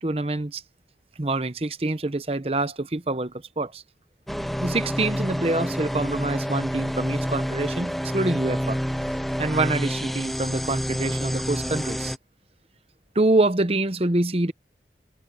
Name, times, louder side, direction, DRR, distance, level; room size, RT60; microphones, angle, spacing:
voice 1, 0.0-0.6 1.2-3.8 4.6-8.8 9.4-12.1 13.1-14.5, right 2 dB, 35° right, 0.9 m, -26 dB
sound 1, 4.3-12.2, equal, ahead, 0.7 m, -28 dB
head